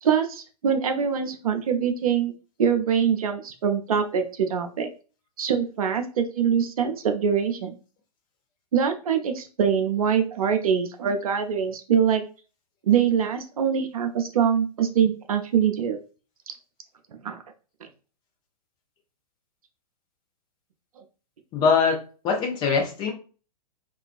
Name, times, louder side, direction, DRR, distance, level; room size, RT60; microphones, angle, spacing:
voice 1, 0.0-2.3 2.6-4.9 5.4-7.7 8.7-12.2 12.9-16.0 17.2-17.4, right 7 dB, 60° right, 6 dB, 0.5 m, -23 dB
voice 2, 21.5-22.0 22.2-23.1, left 5 dB, 20° left, 2 dB, 0.5 m, -22 dB
2.3 x 2.2 x 2.4 m, 0.35 s
figure-of-eight pair, 110°, 21 cm